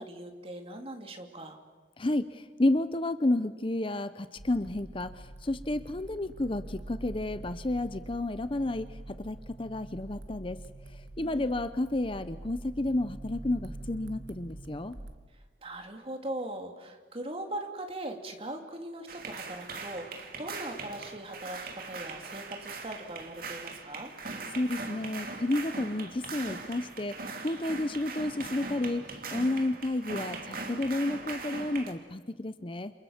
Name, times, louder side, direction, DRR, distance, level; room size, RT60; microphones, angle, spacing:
voice 1, 0.0-1.6 11.2-11.5 15.6-24.1, right 1 dB, 30° right, 4 dB, 3.0 m, -40 dB
voice 2, 2.0-10.6 11.2-15.0 24.5-29.1 29.3-32.9, left 1 dB, 30° left, 12 dB, 0.8 m, -31 dB
sound 1, 4.4-15.2, right 1 dB, 80° right, 2.3 m, -45 dB
sound 2, 19.1-31.9, right 3 dB, 55° right, 2.9 m, -40 dB
29.0 x 27.5 x 7.3 m, 1.3 s
head